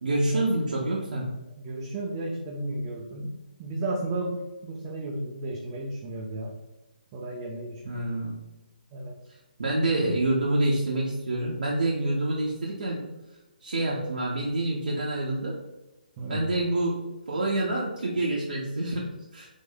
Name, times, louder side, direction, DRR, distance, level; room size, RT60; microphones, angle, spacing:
voice 1, 0.0-1.3 7.9-8.4 9.6-13.0 13.6-15.5 16.3-17.0 17.3-19.5, right 1 dB, 60° right, -5 dB, 0.8 m, -27 dB
voice 2, 1.5-6.5 7.1-8.0 8.9-9.1 16.2-16.5, right 2 dB, 20° right, -2 dB, 0.5 m, -34 dB
4.2 x 2.6 x 3.9 m, 1.0 s
figure-of-eight pair, 140°, 5 cm